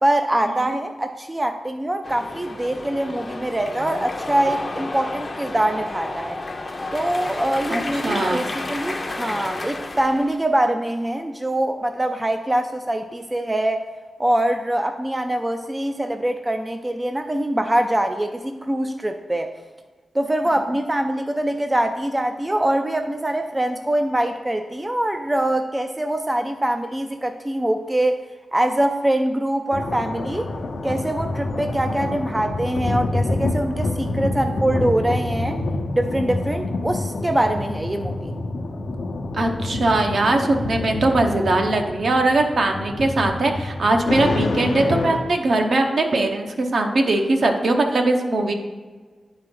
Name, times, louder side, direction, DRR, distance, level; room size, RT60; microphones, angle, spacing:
voice 1, 0.0-6.4 6.9-13.8 14.2-19.5 20.1-28.2 28.5-30.5 30.8-35.6 35.9-38.3, right 1 dB, 15° right, 6 dB, 0.3 m, -23 dB
sound 1, 2.0-10.4, left 2 dB, 30° left, 0.6 m, -31 dB
voice 2, 7.7-8.5 39.4-48.5, right 2 dB, 60° right, 3 dB, 0.8 m, -20 dB
sound 2, 29.7-45.2, left 2 dB, 80° left, 0.8 m, -27 dB
10.5 x 4.4 x 3.7 m, 1.4 s
wide cardioid pair, 125°, 0 cm